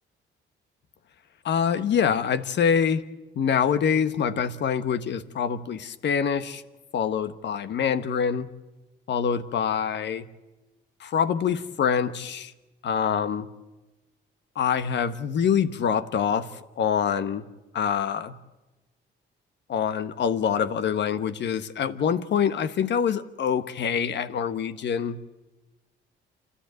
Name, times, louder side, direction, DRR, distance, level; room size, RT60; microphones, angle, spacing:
voice 1, 1.4-3.0 3.3-6.6 6.9-8.5 9.1-10.3 11.0-12.5 12.8-13.5 14.6-16.5 16.8-17.4 17.7-18.3 19.7-25.2, left 7 dB, 60° left, 11 dB, 1.3 m, -25 dB
28.5 x 13.0 x 9.1 m, 1.1 s
cardioid pair, 90°, 20 cm